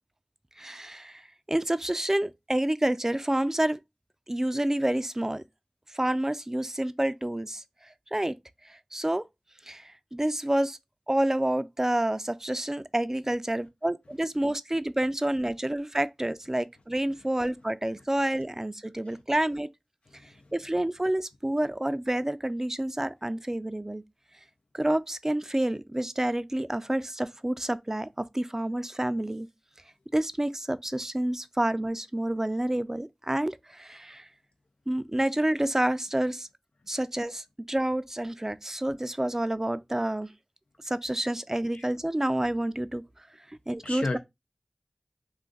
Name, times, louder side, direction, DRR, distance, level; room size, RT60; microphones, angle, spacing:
voice 1, 0.6-1.2 1.5-3.8 4.3-5.4 5.9-7.6 8.1-8.3 8.7-9.2 9.7-10.8 11.1-19.7 20.5-24.0 24.7-29.5 30.1-34.3 34.9-36.5 36.9-40.3 40.8-43.0 43.5-44.2, right 1 dB, 20° right, 0.3 m, -28 dB
voice 2, 20.1-20.5 41.7-41.9 43.8-44.2, left 2 dB, 85° left, 0.4 m, -34 dB
2.5 x 2.3 x 3.8 m
wide cardioid pair, 45°, 2 cm